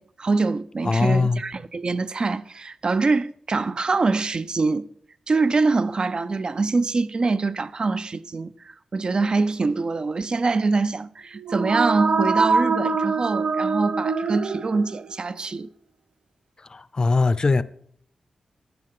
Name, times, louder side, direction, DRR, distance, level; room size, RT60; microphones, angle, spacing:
voice 1, 0.0-4.9 5.3-15.7, right 3 dB, 45° right, 0.5 m, -24 dB
voice 2, 0.8-1.4 16.7-17.6, left 3 dB, 40° left, 0.6 m, -21 dB
sound 1, 11.4-15.2, right 4 dB, 70° right, 0.8 m, -24 dB
15.5 x 12.0 x 3.8 m
wide cardioid pair, 95°, 2 cm